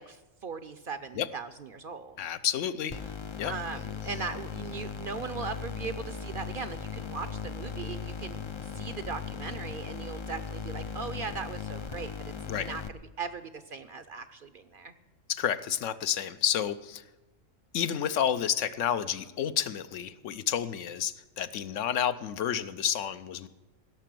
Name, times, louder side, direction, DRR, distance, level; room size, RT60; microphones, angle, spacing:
voice 1, 0.0-2.2 3.4-14.9, right 5 dB, 55° right, 12 dB, 0.6 m, -39 dB
voice 2, 2.2-3.0 3.4-3.5 12.5-12.7 15.3-17.0 17.7-23.5, left 9 dB, 75° left, 12 dB, 1.0 m, -30 dB
sound 1, 2.9-12.9, left 6 dB, 50° left, 0.3 m, -38 dB
16.5 x 6.8 x 7.5 m, 1.1 s
omnidirectional pair, 1.3 m